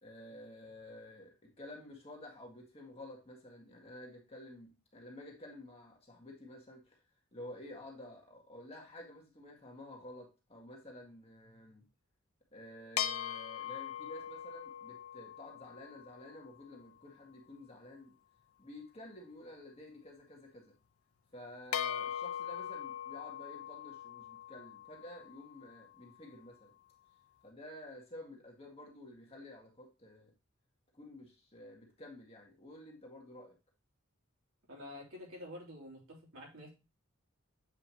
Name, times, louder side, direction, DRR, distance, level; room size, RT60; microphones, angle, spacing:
voice 1, 0.0-7.0 7.3-11.8 12.5-18.1 18.6-20.7 21.3-26.7 27.4-30.3 30.9-33.6, left 1 dB, 30° left, 0 dB, 1.9 m, -51 dB
sound 1, 13.0-16.6 21.7-26.1, left 10 dB, 90° left, 0.6 m, -41 dB
voice 2, 34.7-36.7, left 1 dB, 75° right, -3 dB, 3.4 m, -48 dB
7.9 x 5.0 x 3.0 m, 0.28 s
head